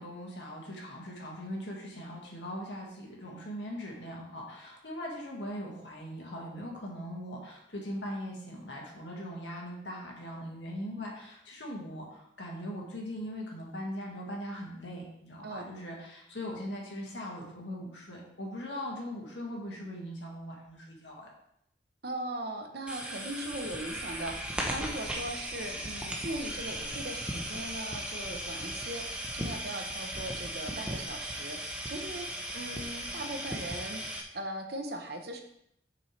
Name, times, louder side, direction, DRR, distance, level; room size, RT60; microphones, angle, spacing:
voice 1, 0.0-21.3, equal, 85° left, -2 dB, 1.9 m, -40 dB
voice 2, 22.0-32.3 32.5-35.4, right 1 dB, 60° right, 4 dB, 0.9 m, -39 dB
sound 1, 22.9-34.2, right 1 dB, 5° right, 0.8 m, -37 dB
7.6 x 6.0 x 3.3 m, 0.77 s
head